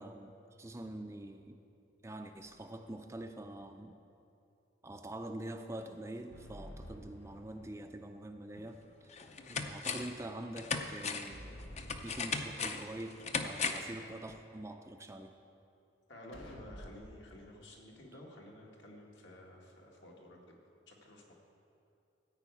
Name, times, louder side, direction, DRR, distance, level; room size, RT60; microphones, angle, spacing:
voice 1, 0.0-1.6 2.0-4.0 4.8-9.1 9.5-11.6 12.0-13.2 13.4-15.3, right 1 dB, 15° right, 6 dB, 0.4 m, -45 dB
sound 1, 2.2-3.0 6.3-8.0 11.3-13.0 16.3-17.2, equal, 90° left, 1.3 m, -51 dB
sound 2, 8.6-8.7 9.1-10.2 10.6-14.0 14.3-14.4, left 5 dB, 35° left, 0.5 m, -37 dB
voice 2, 16.1-20.6 20.9-21.3, left 1 dB, 70° left, -1 dB, 1.8 m, -53 dB
14.0 x 4.9 x 8.3 m, 2.7 s
head